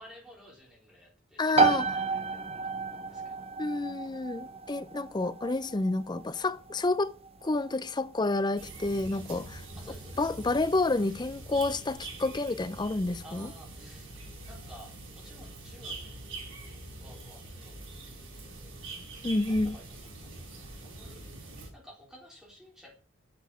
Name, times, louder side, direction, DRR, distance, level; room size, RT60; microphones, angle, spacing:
voice 1, 0.0-2.7 3.1-3.5 9.8-10.3 13.2-14.1 14.4-18.8 19.4-21.2 21.7-22.9, equal, 5° right, 4.2 m, -54 dB
voice 2, 1.4-1.9 3.6-7.1 7.4-9.6 10.2-13.5 19.2-19.8, left 2 dB, 20° left, 0.5 m, -29 dB
sound 1, 1.6-16.1, right 4 dB, 30° right, 0.8 m, -34 dB
sound 2, 8.6-21.7, right 2 dB, 65° right, 4.3 m, -44 dB
7.7 x 7.1 x 7.8 m
head